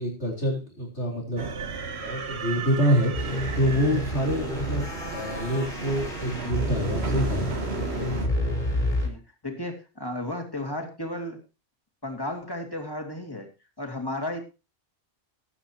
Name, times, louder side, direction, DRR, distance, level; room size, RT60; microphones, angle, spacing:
voice 1, 0.0-1.5 2.0-3.1 3.5-7.6, equal, 85° left, -1 dB, 4.2 m, -26 dB
sound 1, 1.4-8.3, right 5 dB, 75° right, 1.4 m, -35 dB
sound 2, 3.1-9.1, equal, 45° left, 4.5 m, -29 dB
voice 2, 9.0-11.4 12.0-13.5 13.8-14.4, left 1 dB, 20° left, 3 dB, 2.6 m, -33 dB
18.5 x 9.0 x 2.9 m, 0.29 s
omnidirectional pair, 1.1 m